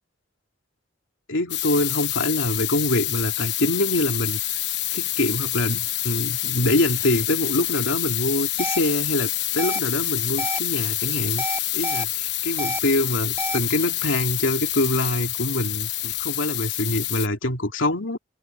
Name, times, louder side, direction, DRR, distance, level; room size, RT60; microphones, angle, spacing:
voice 1, 1.3-4.4 4.9-11.5 11.7-18.2, left 1 dB, 90° left, 3.1 m, -25 dB
sound 1, 1.5-17.3, left 15 dB, 60° left, 0.9 m, -27 dB
sound 2, 8.6-8.8 9.6-9.8 10.4-10.6 11.4-12.0 12.6-12.8 13.4-13.6, right 2 dB, 15° right, 2.6 m, -28 dB
open air
head